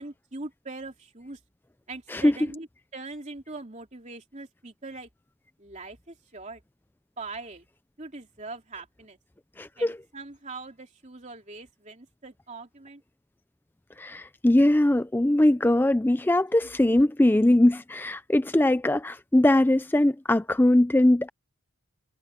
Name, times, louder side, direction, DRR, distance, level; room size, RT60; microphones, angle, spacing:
voice 1, 0.0-1.4 1.9-2.7 2.9-5.1 5.6-6.6 7.2-7.6 8.0-9.2 9.8-13.0 16.6-16.7, right 3 dB, 35° right, 3.0 m, -41 dB
voice 2, 9.6-10.0 14.0-21.3, left 1 dB, 10° left, 0.4 m, -21 dB
head